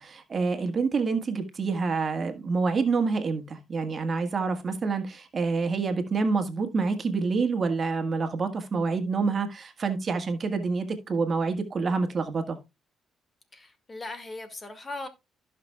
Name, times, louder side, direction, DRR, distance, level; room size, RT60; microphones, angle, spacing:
voice 1, 0.0-12.6, right 4 dB, 40° right, 1.6 m, -27 dB
voice 2, 13.5-15.1, left 2 dB, 30° left, 2.0 m, -38 dB
15.0 x 6.0 x 2.3 m
cardioid pair, 90°, 0 cm